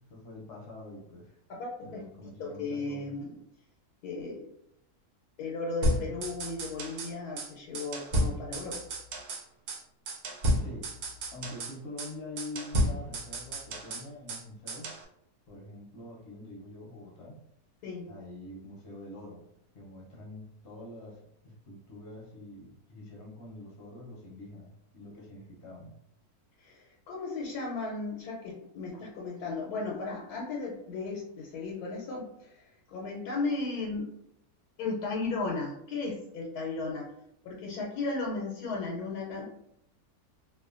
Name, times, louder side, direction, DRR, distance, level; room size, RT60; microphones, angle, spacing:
voice 1, 0.1-1.3 1.8-3.1 10.6-10.9 11.3-14.9 15.5-17.4 18.1-19.4 19.7-25.9, left 2 dB, 60° left, -2 dB, 0.8 m, -45 dB
voice 2, 1.5-2.0 2.4-3.3 4.0-4.4 5.4-8.8 17.8-18.1 26.6-32.6 32.9-34.1 34.8-37.1 37.4-39.4, left 3 dB, 90° left, -3 dB, 1.1 m, -35 dB
sound 1, 5.8-7.1 7.4-7.5 7.7-9.4 9.7-9.8 10.1-11.7 12.0-12.1 12.4-14.4 14.7-15.0, equal, 80° right, 1.2 m, -31 dB
2.8 x 2.1 x 2.3 m, 0.74 s
omnidirectional pair, 1.6 m